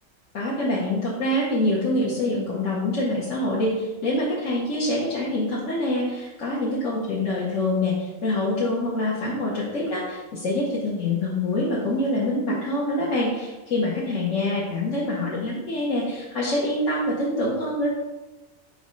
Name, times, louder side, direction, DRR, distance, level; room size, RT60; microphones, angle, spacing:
voice 1, 0.3-17.9, left 1 dB, 65° left, -6 dB, 1.4 m, -25 dB
6.0 x 3.2 x 5.2 m, 1.2 s
omnidirectional pair, 1.4 m